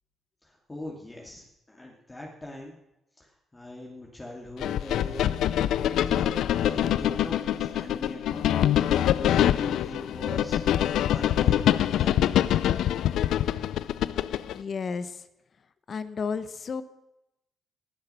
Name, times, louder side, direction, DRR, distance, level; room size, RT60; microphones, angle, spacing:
voice 1, 0.7-2.8 3.5-5.4 5.8-8.5 8.9-10.7 11.1-12.5, left 1 dB, 20° left, -1 dB, 2.5 m, -41 dB
sound 1, 4.6-14.6, left 11 dB, 80° left, 0.4 m, -25 dB
voice 2, 14.4-15.1 15.9-16.8, left 5 dB, 50° left, 13 dB, 0.8 m, -32 dB
19.0 x 6.8 x 5.7 m, 0.89 s
cardioid pair, 75°, 0 cm